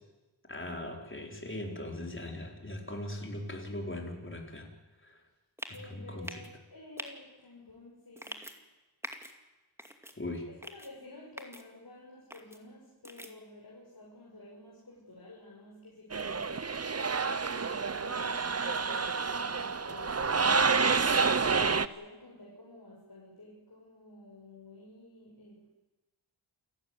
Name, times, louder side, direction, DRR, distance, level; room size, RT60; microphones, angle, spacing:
voice 1, 0.4-4.7 5.0-5.2 5.7-6.4 10.2-10.5, left 1 dB, 25° left, 2 dB, 4.7 m, -39 dB
sound 1, 5.6-5.8 6.2-6.5 7.0-7.1 8.2-8.5 9.0-9.3 9.8-10.1 10.6-10.9 11.4-11.6 12.3-12.6 13.0-13.3, equal, 5° right, 2.4 m, -43 dB
voice 2, 5.7-8.5 10.1-16.9 17.5-21.0 21.4-25.7, left 2 dB, 45° left, -4 dB, 6.4 m, -52 dB
sound 2, 16.1-21.9, right 5 dB, 30° right, 0.9 m, -28 dB
29.0 x 13.5 x 9.8 m, 1.1 s
wide cardioid pair, 100°, 50 cm